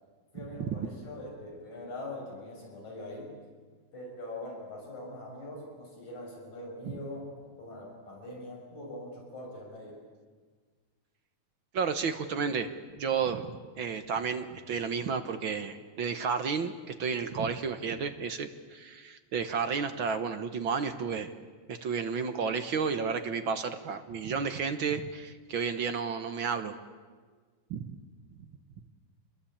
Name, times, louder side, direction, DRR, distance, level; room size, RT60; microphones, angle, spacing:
voice 1, 0.3-3.3 3.9-10.0, left 1 dB, 70° left, 0 dB, 8.1 m, -42 dB
voice 2, 11.7-12.7 13.0-13.5 13.8-21.3 21.7-26.7 27.7-27.8, right 5 dB, 55° right, 8 dB, 1.5 m, -32 dB
27.0 x 21.5 x 8.8 m, 1.5 s
omnidirectional pair, 3.4 m